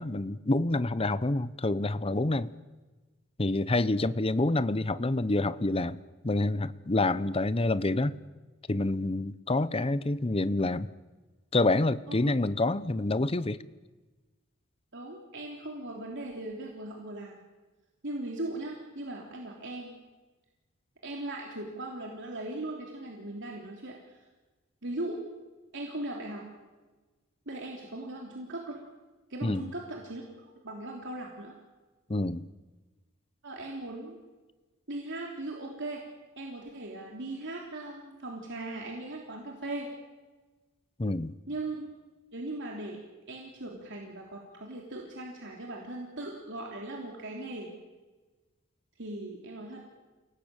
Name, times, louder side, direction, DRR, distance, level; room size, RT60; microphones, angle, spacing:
voice 1, 0.0-2.5 3.4-6.0 6.2-8.2 8.7-10.9 11.5-13.6 29.4-29.6 32.1-32.5 41.0-41.3, left 2 dB, 25° left, 15 dB, 0.8 m, -27 dB
voice 2, 14.9-17.4 18.0-19.9 21.0-24.2 24.8-25.2 25.7-26.4 27.4-28.8 29.3-31.5 33.4-34.2 34.9-36.0 36.4-39.9 41.5-41.9 42.3-43.0 43.3-47.7 49.0-49.8, right 2 dB, 60° right, 0 dB, 3.4 m, -39 dB
29.0 x 19.0 x 8.9 m, 1.2 s
head